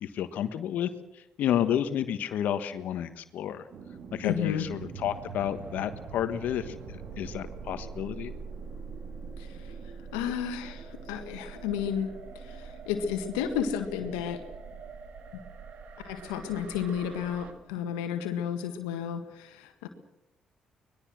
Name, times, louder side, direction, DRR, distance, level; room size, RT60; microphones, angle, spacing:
voice 1, 0.0-3.7 4.1-8.3, left 10 dB, 70° left, 11 dB, 1.4 m, -31 dB
sound 1, 3.7-17.5, right 5 dB, 65° right, 2.5 m, -43 dB
voice 2, 4.2-4.7 9.4-9.7 10.1-12.1 12.4-14.4 16.0-19.9, left 8 dB, 85° left, 7 dB, 1.7 m, -32 dB
24.5 x 20.5 x 6.2 m, 0.89 s
hypercardioid pair, 45°, 3 cm